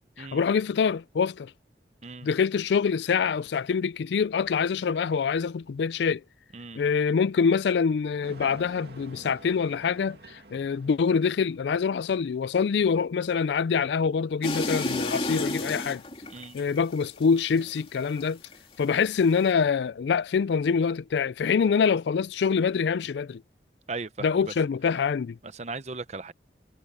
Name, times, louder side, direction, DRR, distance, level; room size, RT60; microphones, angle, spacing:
voice 1, 0.2-1.5 2.2-6.2 6.8-16.0 16.5-18.4 18.8-23.4 24.2-25.4, left 6 dB, 80° left, 0.4 m, -25 dB
sound 1, 8.2-12.4, right 2 dB, 65° right, 2.5 m, -49 dB
sound 2, 14.4-18.6 18.9-19.5, left 2 dB, 30° left, 2.7 m, -32 dB
voice 2, 23.9-24.5 25.4-26.3, right 3 dB, 40° right, 0.8 m, -37 dB
head